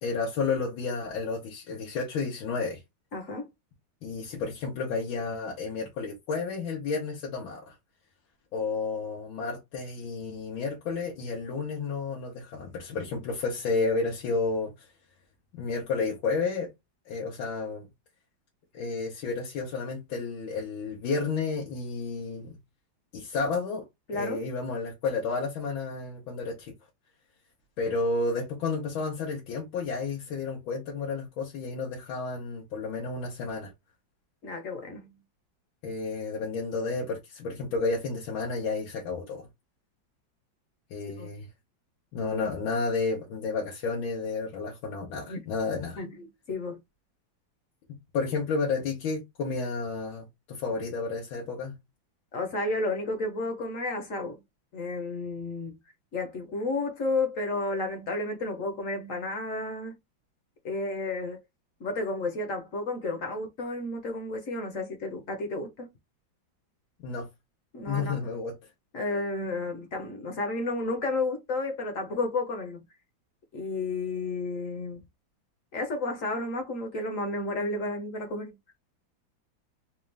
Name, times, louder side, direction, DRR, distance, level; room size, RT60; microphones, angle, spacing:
voice 1, 0.0-2.8 4.0-7.7 8.5-14.9 15.5-16.7 17.0-17.9 18.7-22.6 23.1-23.8 24.1-26.7 27.8-33.7 35.8-39.5 40.9-41.5 42.1-46.0 48.1-51.8 67.0-67.3 67.9-68.5, left 4 dB, 85° left, 1.8 m, -31 dB
voice 2, 3.1-3.5 24.1-24.4 34.4-35.1 41.2-41.3 45.3-45.4 46.0-46.8 52.3-54.4 54.7-55.8 56.1-59.9 60.6-61.4 61.8-65.9 67.7-68.2 68.9-72.8 73.5-75.0 75.7-78.6, left 2 dB, 50° left, 1.1 m, -32 dB
4.3 x 2.4 x 3.3 m
omnidirectional pair, 2.1 m